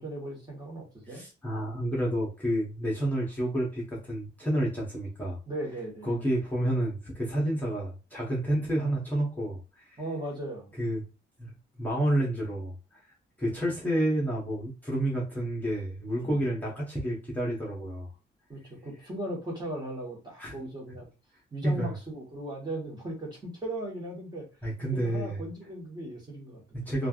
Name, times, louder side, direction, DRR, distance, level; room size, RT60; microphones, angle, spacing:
voice 1, 0.0-1.2 5.5-6.1 10.0-10.9 13.4-13.5 16.2-16.4 18.5-21.1 21.5-24.5 24.9-26.8, right 1 dB, 20° right, -2 dB, 1.2 m, -37 dB
voice 2, 1.1-5.4 6.0-10.0 10.8-11.0 11.4-13.0 13.4-18.1 20.4-20.6 21.6-21.9 24.6-25.4 26.7-27.1, right 1 dB, 10° left, -5 dB, 0.9 m, -30 dB
3.2 x 2.4 x 2.4 m, 0.31 s
wide cardioid pair, 135°, 19 cm